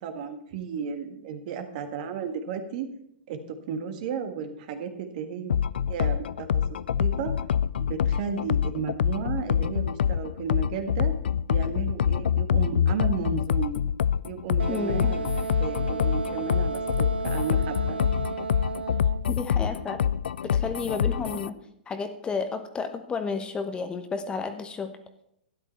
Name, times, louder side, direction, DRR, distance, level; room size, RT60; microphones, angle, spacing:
voice 1, 0.0-2.9 3.3-3.4 3.7-5.5 5.9-6.6 7.0-7.3 7.9-11.1 11.5-13.8 14.2-18.0, right 6 dB, 55° right, 6 dB, 1.6 m, -33 dB
sound 1, 5.5-21.5, left 8 dB, 75° left, 0.4 m, -26 dB
Wind instrument woodwind instrument, 14.6-19.3, right 4 dB, 90° right, 0.5 m, -33 dB
voice 2, 14.7-15.2 19.3-20.0 20.4-21.5 21.9-24.9, left 5 dB, 15° left, 8 dB, 1.0 m, -31 dB
12.5 x 10.0 x 4.5 m, 0.75 s
hypercardioid pair, 120°, 5 cm